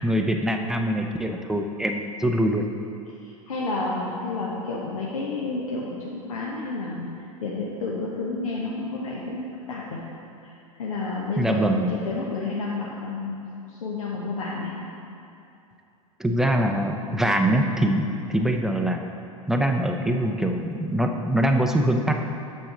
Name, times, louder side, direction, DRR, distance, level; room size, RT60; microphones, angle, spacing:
voice 1, 0.0-2.6 11.4-11.9 16.2-18.0 18.3-19.0 19.5-22.1, right 1 dB, ahead, 3 dB, 0.5 m, -23 dB
voice 2, 3.2-7.1 7.4-10.0 10.4-10.5 10.8-13.4 13.7-14.7, left 3 dB, 70° left, -4 dB, 1.0 m, -30 dB
8.5 x 6.4 x 3.8 m, 2.7 s
figure-of-eight pair, 90°, 18 cm